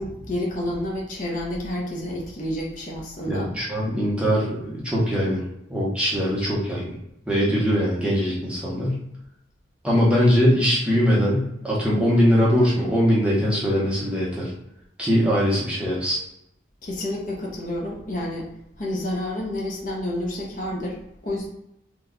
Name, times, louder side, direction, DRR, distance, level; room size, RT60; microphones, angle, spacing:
voice 1, 0.0-3.5 16.8-18.5 18.8-21.5, left 1 dB, 40° left, -3 dB, 0.7 m, -29 dB
voice 2, 3.3-6.8 7.3-9.0 9.8-14.5 15.0-16.2, equal, 5° right, -7 dB, 0.7 m, -21 dB
3.1 x 2.2 x 3.7 m, 0.81 s
head